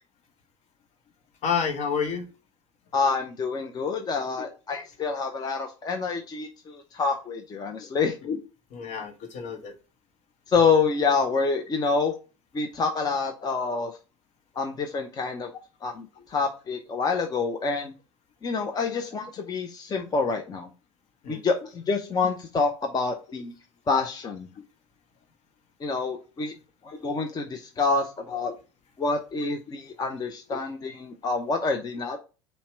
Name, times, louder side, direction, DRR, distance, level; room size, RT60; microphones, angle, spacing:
voice 1, 1.4-2.3 8.2-8.4 8.7-9.7 21.2-21.4 23.3-23.4, left 6 dB, 50° left, 6 dB, 1.0 m, -29 dB
voice 2, 2.9-8.1 10.5-12.1 12.5-13.9 14.6-15.5 15.8-17.9 18.4-20.7 21.3-23.5 23.9-24.5 25.8-26.5 26.8-28.5 29.0-32.2, left 4 dB, 25° left, 4 dB, 0.6 m, -27 dB
5.6 x 2.2 x 4.4 m, 0.32 s
hypercardioid pair, 85°, 15 cm